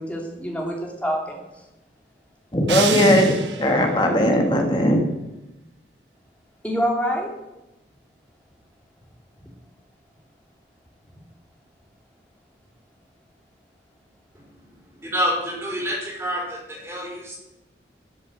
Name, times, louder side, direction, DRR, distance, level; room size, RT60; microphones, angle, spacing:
voice 1, 0.0-1.4 6.6-7.3, equal, 10° left, -1 dB, 2.9 m, -26 dB
voice 2, 2.5-5.0, equal, 25° left, 2 dB, 2.3 m, -18 dB
sound 1, 2.7-3.9, right 8 dB, 85° right, 1.4 m, -28 dB
voice 3, 14.3-17.4, equal, 15° right, -4 dB, 4.9 m, -28 dB
13.0 x 7.3 x 8.3 m, 0.96 s
head